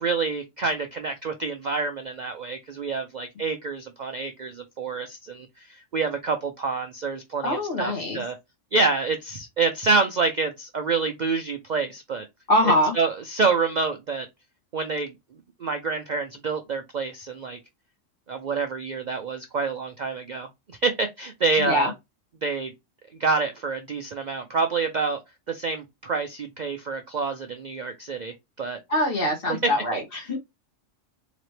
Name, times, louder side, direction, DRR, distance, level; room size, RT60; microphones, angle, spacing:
voice 1, 0.0-8.3 8.7-12.2 13.0-14.3 14.7-15.1 15.6-17.6 18.3-21.9 22.4-22.7 23.2-25.2 25.5-28.8 29.9-30.0, right 4 dB, 50° right, 0.5 m, -27 dB
voice 2, 7.4-8.2 12.5-12.9 21.6-21.9 28.9-30.4, left 1 dB, 50° left, 1.8 m, -23 dB
4.1 x 2.9 x 3.2 m
omnidirectional pair, 1.3 m